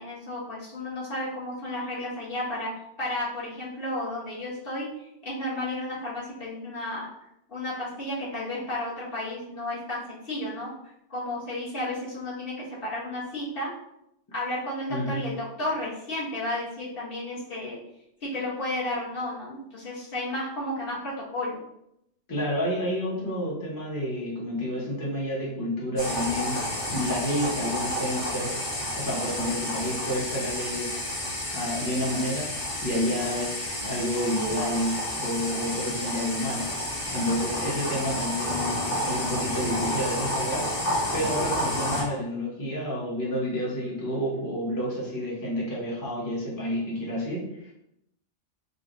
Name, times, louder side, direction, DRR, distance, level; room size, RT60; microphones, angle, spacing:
voice 1, 0.0-2.7 3.0-4.9 5.2-7.1 7.5-10.7 11.1-13.7 14.3-17.8 18.2-21.6, left 1 dB, 50° left, -8 dB, 1.5 m, -32 dB
voice 2, 14.9-15.3 22.3-31.1 31.5-36.7 37.1-47.7, equal, 20° left, -6 dB, 0.8 m, -30 dB
sound 1, 26.0-42.0, left 1 dB, 80° left, 1.8 m, -30 dB
3.7 x 2.4 x 3.8 m, 0.81 s
omnidirectional pair, 1.2 m